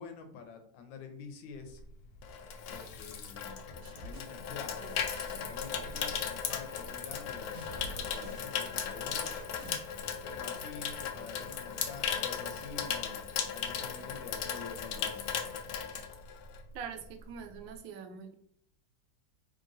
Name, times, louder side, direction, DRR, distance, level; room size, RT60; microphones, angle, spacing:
voice 1, 0.0-1.8 2.7-5.0 5.5-9.3 10.2-15.3, left 5 dB, 90° left, 7 dB, 1.4 m, -47 dB
Water tap faucet / Sink (filling or washing), 1.7-16.7 17.0-17.3, left 7 dB, 70° left, 0.9 m, -37 dB
sound 1, 3.8-9.9, right 2 dB, 65° right, 1.4 m, -48 dB
voice 2, 16.7-18.3, right 6 dB, 85° right, 7 dB, 1.3 m, -43 dB
3.7 x 3.4 x 2.6 m, 0.67 s
omnidirectional pair, 2.0 m